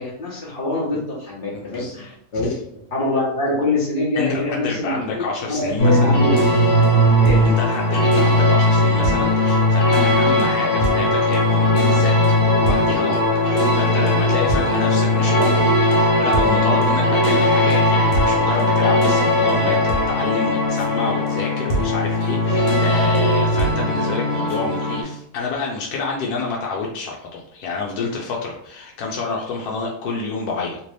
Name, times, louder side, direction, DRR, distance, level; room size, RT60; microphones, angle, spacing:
voice 1, 0.0-2.5 2.9-6.4 7.2-7.4, left 2 dB, 45° left, -6 dB, 0.8 m, -24 dB
voice 2, 4.2-6.2 7.4-30.8, left 4 dB, 90° left, -2 dB, 1.1 m, -28 dB
sound 1, 5.8-25.0, left 1 dB, 65° left, 1.2 m, -18 dB
2.9 x 2.6 x 3.2 m, 0.68 s
omnidirectional pair, 1.6 m